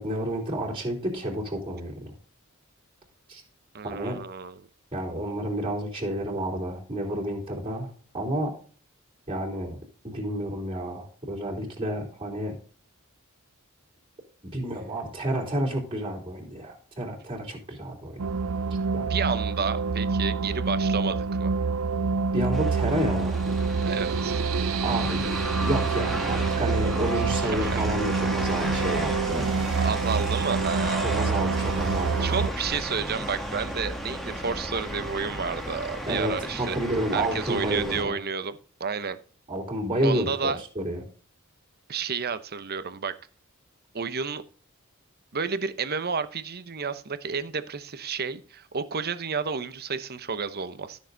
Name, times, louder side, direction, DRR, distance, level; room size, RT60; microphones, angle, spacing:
voice 1, 0.0-2.1 3.3-3.4 3.8-4.2 4.9-8.6 9.3-9.8 10.0-12.5 14.5-18.2 18.9-19.1 22.3-23.4 24.8-25.3 25.6-29.5 31.0-32.3 36.1-38.1 39.5-41.0, right 1 dB, 25° right, 3.2 m, -30 dB
voice 2, 3.7-4.6 19.1-21.5 23.8-24.4 27.4-27.9 29.8-31.7 32.2-36.8 37.1-39.2 40.0-40.6 41.9-43.2 43.9-44.4 45.3-51.0, right 5 dB, 50° right, 0.9 m, -31 dB
sound 1, 18.2-32.5, right 4 dB, 80° right, 0.5 m, -27 dB
sound 2, 22.5-38.0, equal, ahead, 1.7 m, -34 dB
13.0 x 6.6 x 4.0 m
head